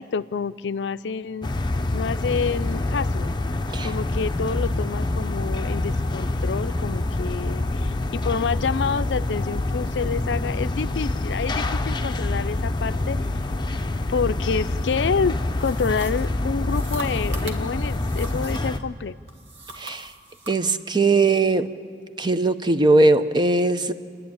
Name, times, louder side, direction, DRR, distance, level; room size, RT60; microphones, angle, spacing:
voice 1, 0.0-1.5 1.9-3.3 3.8-13.2 14.1-19.2, left 5 dB, 90° left, 14 dB, 0.4 m, -28 dB
sound 1, 1.4-18.8, left 2 dB, 25° left, 0.7 m, -26 dB
sound 2, 15.5-18.8 19.3-20.6, right 2 dB, 85° right, 1.9 m, -40 dB
voice 2, 19.8-20.1 20.5-21.7 22.2-23.9, right 2 dB, 25° right, 10 dB, 0.7 m, -20 dB
30.0 x 10.5 x 8.7 m, 2.3 s
head